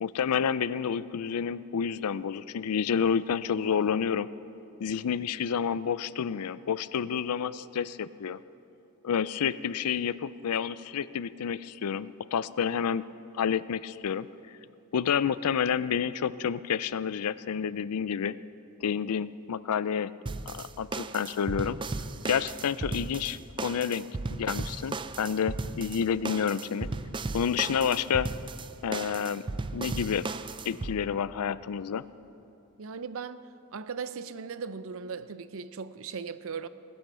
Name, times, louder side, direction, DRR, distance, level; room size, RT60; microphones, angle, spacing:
voice 1, 0.0-4.3 4.8-8.4 9.0-13.0 13.4-14.3 14.9-18.3 18.8-20.1 20.5-21.8 22.3-26.9 27.3-28.3 28.8-29.4 29.7-30.2 30.7-32.0, left 7 dB, 80° left, 0.4 m, -29 dB
sound 1, 20.3-30.9, right 3 dB, 20° right, 0.4 m, -36 dB
voice 2, 32.8-36.7, right 5 dB, 65° right, 0.6 m, -38 dB
18.5 x 10.0 x 6.8 m
head